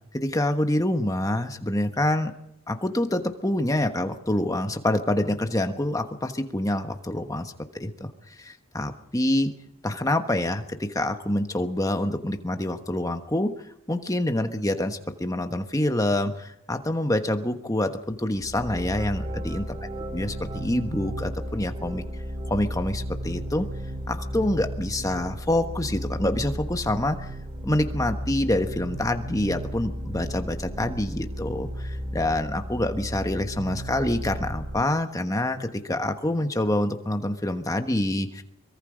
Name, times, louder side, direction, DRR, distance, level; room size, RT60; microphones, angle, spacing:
voice 1, 0.1-2.3 2.7-7.5 7.8-8.1 8.4-9.5 9.8-13.5 13.9-19.7 20.1-22.0 22.5-23.7 24.1-27.3 27.6-38.4, left 1 dB, 15° left, 7 dB, 1.2 m, -26 dB
sound 1, 18.3-34.8, equal, 20° right, 2.3 m, -34 dB
23.5 x 22.0 x 5.1 m, 0.80 s
head